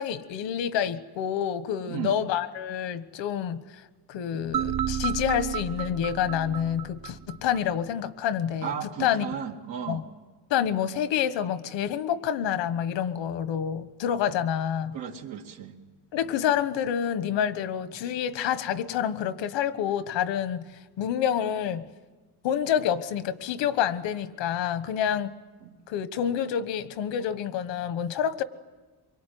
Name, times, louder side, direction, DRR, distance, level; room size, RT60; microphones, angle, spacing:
voice 1, 0.0-3.6 4.1-8.7 9.0-9.3 9.9-10.0 10.5-15.0 16.1-20.7 21.0-21.9 22.4-25.3 25.9-28.4, left 9 dB, 85° left, 13 dB, 1.4 m, -28 dB
sound 1, 4.5-7.6, right 9 dB, 55° right, 1.1 m, -32 dB
voice 2, 8.6-10.0 14.9-15.8 25.6-25.7, right 8 dB, 90° right, 1 dB, 2.3 m, -35 dB
24.0 x 24.0 x 9.4 m, 1.3 s
cardioid pair, 130°, 43 cm